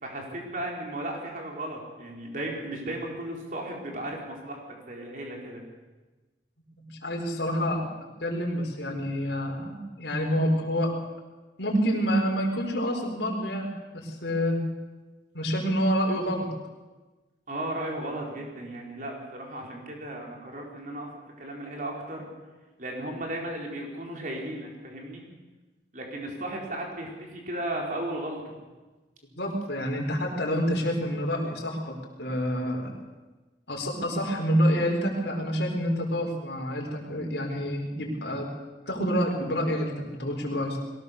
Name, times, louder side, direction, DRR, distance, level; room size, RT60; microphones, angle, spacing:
voice 1, 0.0-5.6 17.5-21.1 21.4-22.3 22.8-25.2 25.9-28.5, right 1 dB, 45° right, 0 dB, 4.4 m, -35 dB
voice 2, 6.8-7.8 8.2-10.9 11.6-13.7 13.9-14.6 15.3-16.5 29.3-32.9 33.7-38.5 38.9-39.9 40.2-40.8, equal, 70° left, 0 dB, 5.0 m, -27 dB
22.5 x 17.5 x 6.9 m, 1.2 s
head